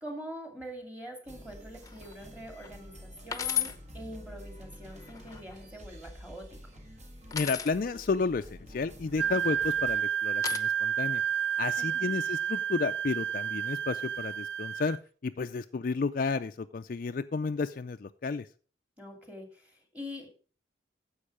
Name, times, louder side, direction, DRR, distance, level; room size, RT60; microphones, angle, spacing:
voice 1, 0.0-6.8 11.8-12.2 19.0-20.3, equal, 10° right, 2.3 m, -44 dB
sound 1, 1.2-10.0, equal, 40° right, 1.6 m, -49 dB
sound 2, 1.8-2.1 2.6-2.7 3.3-3.8 4.9-5.6 7.3-7.7 9.2-9.7 10.4-10.6, left 9 dB, 20° left, 0.8 m, -34 dB
voice 2, 7.3-11.2 11.6-15.0 15.2-18.5, left 4 dB, 50° left, 0.4 m, -32 dB
Wind instrument woodwind instrument, 9.2-15.0, right 9 dB, 85° right, 0.4 m, -30 dB
9.9 x 7.2 x 4.9 m
head